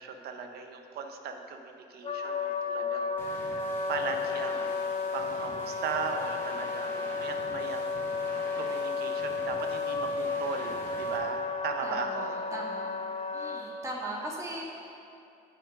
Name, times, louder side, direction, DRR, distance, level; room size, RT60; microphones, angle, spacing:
voice 1, 0.0-8.1 8.5-12.4, right 5 dB, 70° right, 5 dB, 0.9 m, -38 dB
Wind instrument woodwind instrument, 2.0-13.6, left 4 dB, 35° left, 0.6 m, -33 dB
sound 1, 3.2-11.2, left 1 dB, 15° left, 1.9 m, -47 dB
voice 2, 11.8-12.9 13.3-15.0, right 1 dB, 20° right, -3 dB, 1.7 m, -39 dB
7.6 x 7.2 x 5.2 m, 2.6 s
cardioid pair, 110°, 17 cm